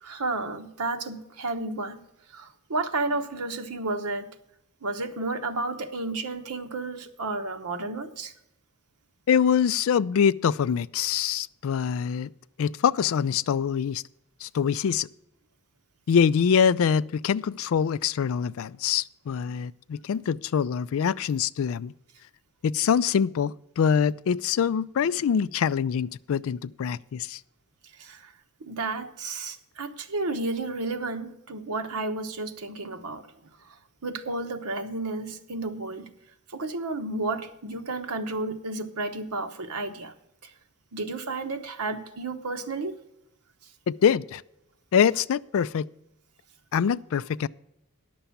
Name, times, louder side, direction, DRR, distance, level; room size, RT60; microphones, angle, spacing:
voice 1, 0.0-2.0 2.3-4.3 4.8-8.3 28.0-28.3 28.6-33.3 34.0-36.1 36.5-40.1 40.4-40.5 40.9-42.9, right 3 dB, 90° right, 1.0 m, -32 dB
voice 2, 9.3-12.3 12.6-14.0 14.4-15.1 16.1-21.9 22.6-27.4 43.9-44.4 44.9-45.9 46.7-47.5, left 7 dB, 60° left, 0.3 m, -24 dB
10.0 x 6.8 x 7.1 m
head